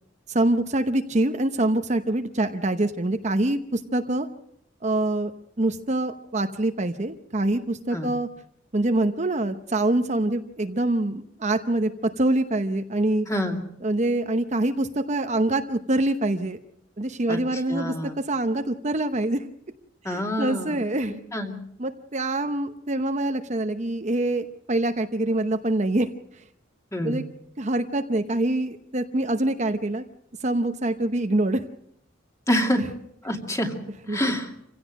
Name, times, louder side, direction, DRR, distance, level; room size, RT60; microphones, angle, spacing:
voice 1, 0.3-4.3 4.8-5.3 5.6-8.3 8.7-11.9 12.2-13.3 13.8-16.6 17.0-17.9 18.3-19.5 20.0-21.1 21.8-26.1 27.0-27.2 27.6-30.0 30.4-31.6 32.8-32.9 34.1-34.2, right 1 dB, 40° right, 7 dB, 0.9 m, -25 dB
voice 2, 13.3-13.6 17.3-17.4 17.7-18.2 20.0-20.8 21.3-21.5 26.9-27.2 32.5-32.8 33.2-33.7 34.1-34.5, equal, 15° left, 3 dB, 2.4 m, -26 dB
26.5 x 16.5 x 6.4 m, 0.73 s
head